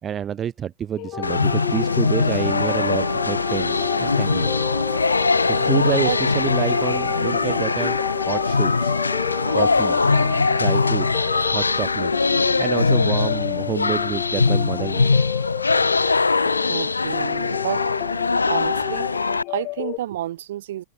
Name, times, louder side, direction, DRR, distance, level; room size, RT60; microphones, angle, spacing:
voice 1, 0.0-4.5 5.5-8.0 8.3-8.9 9.5-10.0 10.6-11.1 11.5-12.1 12.6-15.1, right 9 dB, 25° right, 2.0 m, -28 dB
sound 1, 1.0-20.0, left 25 dB, 40° left, 3.9 m, -31 dB
sound 2, 1.1-11.8, right 1 dB, 5° right, 1.4 m, -37 dB
sound 3, 1.2-19.4, left 3 dB, 80° left, 1.3 m, -21 dB
voice 2, 16.7-17.8 18.5-19.1 19.5-20.8, right 13 dB, 60° right, 1.5 m, -29 dB
figure-of-eight pair, 90°, 0 cm